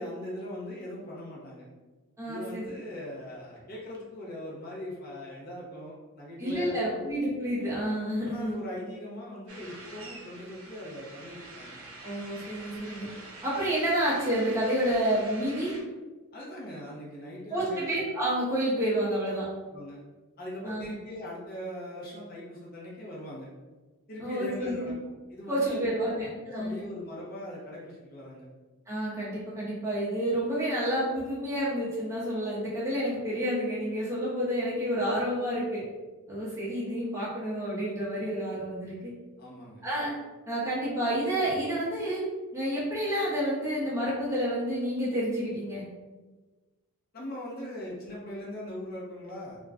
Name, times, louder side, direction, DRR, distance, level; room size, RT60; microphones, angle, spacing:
voice 1, 0.0-1.6 2.2-7.1 8.2-11.8 16.3-17.9 19.3-19.4 19.7-20.0 20.4-23.5 24.1-24.9 25.3-26.1 26.5-28.5 39.4-39.8 47.1-49.6, left 1 dB, 45° left, -5 dB, 0.7 m, -40 dB
voice 2, 2.2-2.7 6.4-8.6 12.0-13.1 13.4-15.7 17.5-19.4 20.6-20.9 24.2-24.9 25.5-26.8 28.9-35.8 36.3-39.1 39.8-40.1 40.5-42.2 42.5-45.8, equal, 15° right, -8 dB, 0.7 m, -29 dB
sound 1, 9.5-15.8, right 2 dB, 75° right, 0.7 m, -46 dB
2.5 x 2.2 x 3.3 m, 1.2 s
head